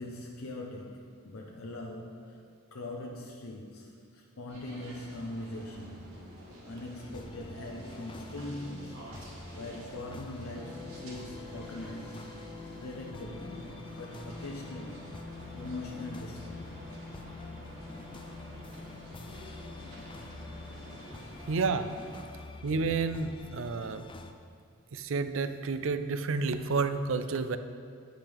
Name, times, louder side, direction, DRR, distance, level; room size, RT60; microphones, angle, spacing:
voice 1, 0.0-2.4 2.7-6.1 6.6-9.0 9.5-12.2 12.8-15.1 15.5-16.7, left 2 dB, 75° left, 1 dB, 0.7 m, -42 dB
sound 1, 4.5-22.2, equal, 75° right, 2.5 m, -49 dB
sound 2, 7.0-24.3, left 2 dB, 25° left, 0.4 m, -48 dB
sound 3, 10.5-20.7, left 3 dB, ahead, 0.9 m, -47 dB
voice 2, 21.5-21.9 22.6-24.1 24.9-27.6, right 4 dB, 60° right, 10 dB, 0.5 m, -30 dB
9.9 x 8.8 x 3.5 m, 2.3 s
head